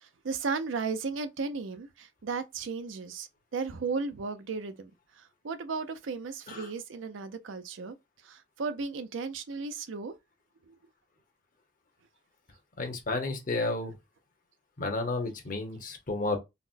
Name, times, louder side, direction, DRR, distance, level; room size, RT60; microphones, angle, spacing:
voice 1, 0.0-4.9 5.2-8.0 8.2-10.1 10.7-10.8, right 4 dB, 70° right, 0.5 m, -35 dB
voice 2, 12.8-13.9 14.8-16.4, left 2 dB, 45° left, 0.9 m, -32 dB
4.1 x 2.1 x 2.4 m
head